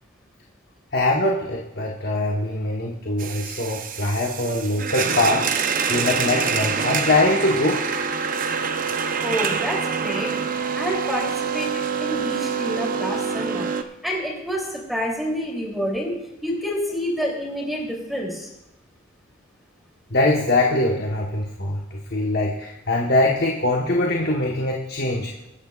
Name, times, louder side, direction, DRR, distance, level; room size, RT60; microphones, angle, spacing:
voice 1, 0.9-7.8 20.1-25.3, left 2 dB, 55° left, -1 dB, 1.2 m, -23 dB
sound 1, 3.2-13.8, right 6 dB, 45° right, 0.6 m, -26 dB
voice 2, 9.2-10.3 10.7-13.7 14.0-16.2 16.4-18.5, equal, ahead, -2 dB, 3.0 m, -28 dB
22.0 x 9.8 x 2.4 m, 0.91 s
head